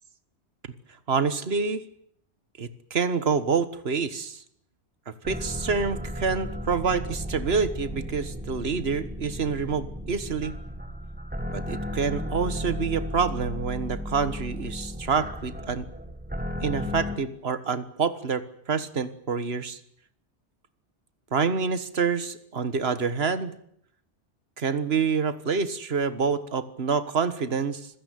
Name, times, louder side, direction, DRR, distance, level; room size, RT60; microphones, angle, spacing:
voice 1, 1.1-1.8 2.6-4.4 5.1-10.6 11.5-15.8 16.6-19.8 21.3-23.5 24.6-27.9, right 5 dB, 65° right, 13 dB, 1.7 m, -27 dB
sound 1, 5.2-17.2, equal, 10° right, 1.6 m, -34 dB
26.0 x 16.0 x 9.2 m, 0.69 s
omnidirectional pair, 1.1 m